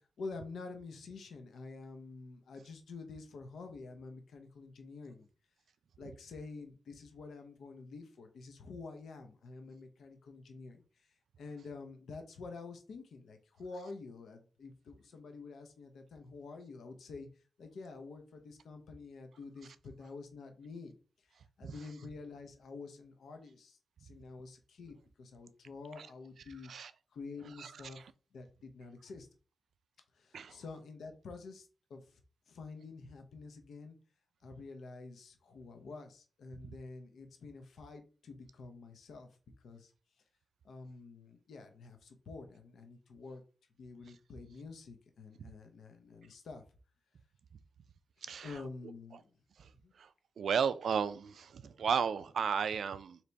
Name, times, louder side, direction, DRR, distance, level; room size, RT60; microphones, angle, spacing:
voice 1, 0.0-5.3 6.0-11.1 11.4-17.3 17.6-21.0 21.2-28.0 28.3-29.3 30.1-32.2 32.5-34.0 34.4-39.3 39.6-39.9 40.6-43.4 43.8-46.6 48.4-49.3 49.8-49.9, left 4 dB, 90° left, 0.7 m, -48 dB
voice 2, 50.4-53.2, right 7 dB, 80° right, 0.3 m, -33 dB
4.0 x 2.9 x 3.3 m
wide cardioid pair, 120°, 0 cm